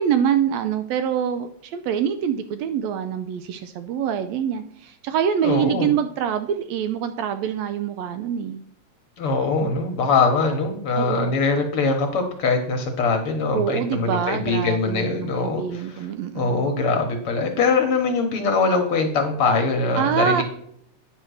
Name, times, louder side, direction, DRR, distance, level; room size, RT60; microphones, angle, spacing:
voice 1, 0.0-8.6 9.6-9.8 11.0-11.3 13.5-16.6 20.0-20.4, right 8 dB, 80° right, 9 dB, 1.6 m, -25 dB
voice 2, 5.4-5.9 9.2-16.1 16.3-20.4, left 4 dB, 60° left, 4 dB, 1.6 m, -22 dB
9.5 x 4.4 x 6.3 m, 0.70 s
omnidirectional pair, 3.4 m